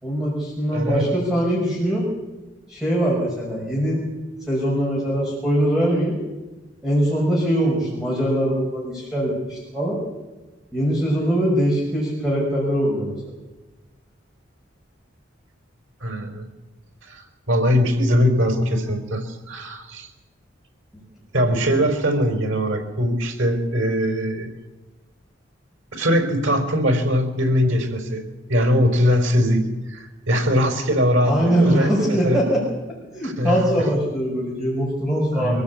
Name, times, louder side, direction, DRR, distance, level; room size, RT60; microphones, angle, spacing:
voice 1, 0.0-2.1 2.7-4.0 4.5-6.2 6.8-10.0 10.7-13.1 21.4-21.5 31.2-32.6 33.1-35.6, equal, 5° right, -4 dB, 5.9 m, -22 dB
voice 2, 0.7-1.1 16.0-16.5 17.0-20.1 21.3-24.5 25.9-28.2 28.5-29.6 29.9-32.4 33.2-33.6 35.3-35.6, equal, 85° right, 6 dB, 4.2 m, -21 dB
24.5 x 16.0 x 8.4 m, 1.1 s
head